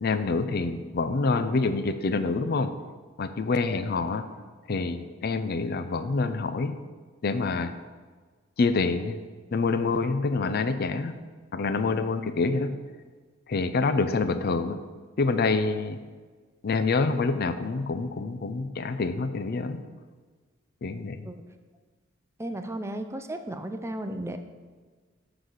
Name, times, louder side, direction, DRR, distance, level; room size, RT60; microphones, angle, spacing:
voice 1, 0.0-2.7 3.2-4.2 4.7-6.7 7.2-7.7 8.6-9.2 9.5-11.1 11.5-12.7 13.5-14.8 15.2-16.0 16.6-19.8 20.8-21.2, left 3 dB, 55° left, 11 dB, 0.5 m, -26 dB
voice 2, 22.4-24.4, right 1 dB, 15° right, 7 dB, 0.5 m, -34 dB
9.8 x 4.0 x 6.5 m, 1.4 s
head